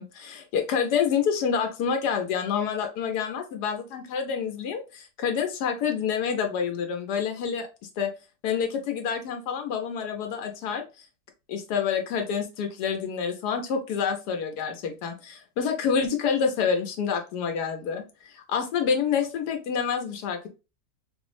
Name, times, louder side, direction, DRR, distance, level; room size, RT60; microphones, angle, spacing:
voice 1, 0.0-7.7 8.0-8.1 8.4-11.1 11.5-20.5, left 7 dB, 85° left, 4 dB, 1.2 m, -28 dB
3.9 x 2.0 x 3.0 m, 0.30 s
omnidirectional pair, 1.7 m